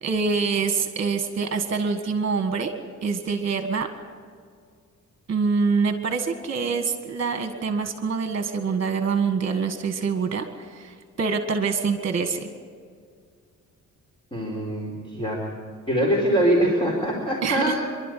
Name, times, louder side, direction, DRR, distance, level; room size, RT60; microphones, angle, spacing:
voice 1, 0.0-2.7 3.0-3.9 5.3-12.5 17.4-17.8, right 5 dB, 40° right, 7 dB, 1.8 m, -25 dB
voice 2, 14.3-15.4 15.9-17.9, right 1 dB, 15° left, -1 dB, 4.4 m, -23 dB
28.5 x 12.0 x 9.3 m, 2.1 s
cardioid pair, 125°, 32 cm